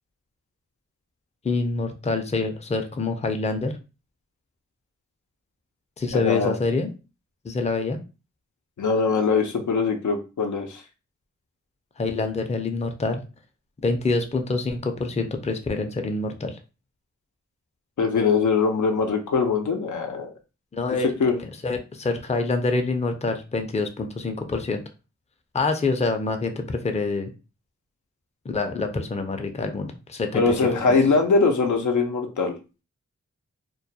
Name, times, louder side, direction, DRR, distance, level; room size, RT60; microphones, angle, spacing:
voice 1, 1.4-3.7 6.0-6.9 7.4-8.0 12.0-13.2 13.8-16.6 20.7-21.1 21.4-24.8 25.5-27.3 28.4-30.6, left 3 dB, 25° left, 5 dB, 0.4 m, -26 dB
voice 2, 6.1-6.5 8.8-10.8 18.0-20.3 21.2-21.3 30.3-32.5, left 4 dB, 90° left, 4 dB, 0.5 m, -22 dB
2.2 x 2.2 x 2.6 m, 0.31 s
wide cardioid pair, 60°, 29 cm